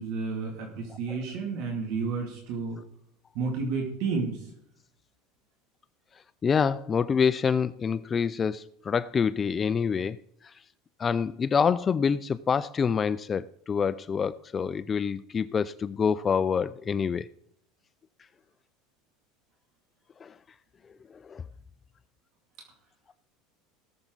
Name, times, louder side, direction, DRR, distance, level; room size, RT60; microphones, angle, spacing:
voice 1, 0.0-2.8 3.3-4.5, right 4 dB, 60° right, 2.4 m, -31 dB
voice 2, 6.4-10.2 10.4-10.5 11.0-17.3 20.2-20.3 21.1-21.4, left 6 dB, 20° left, 0.3 m, -26 dB
18.5 x 7.2 x 3.9 m
supercardioid pair, 150°, 0 cm